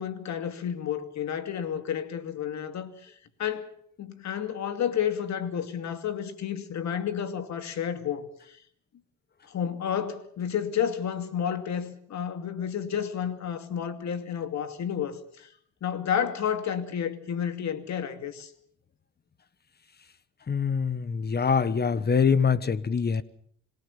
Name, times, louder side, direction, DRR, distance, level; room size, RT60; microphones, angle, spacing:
voice 1, 0.0-3.1 3.4-3.7 4.0-8.6 9.5-15.5 15.8-18.5, left 8 dB, 65° left, 2.5 m, -31 dB
voice 2, 20.5-23.2, left 6 dB, 35° left, 1.3 m, -24 dB
26.0 x 17.5 x 7.2 m
cardioid pair, 90°, 30 cm